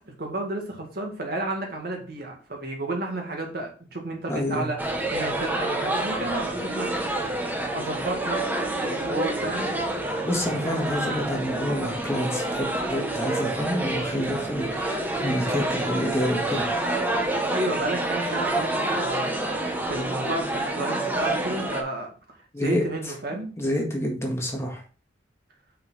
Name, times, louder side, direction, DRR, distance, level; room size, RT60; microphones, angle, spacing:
voice 1, 0.2-4.8 5.1-6.9 7.7-8.4 8.8-9.7 17.5-19.3 19.9-23.5, right 2 dB, 60° right, 2 dB, 2.0 m, -31 dB
voice 2, 4.3-4.7 10.2-16.7 22.5-22.8 23.6-24.8, equal, 15° left, 0 dB, 1.6 m, -28 dB
sound 1, 4.8-21.8, right 1 dB, 10° right, 1.1 m, -28 dB
6.0 x 5.5 x 4.1 m, 0.38 s
head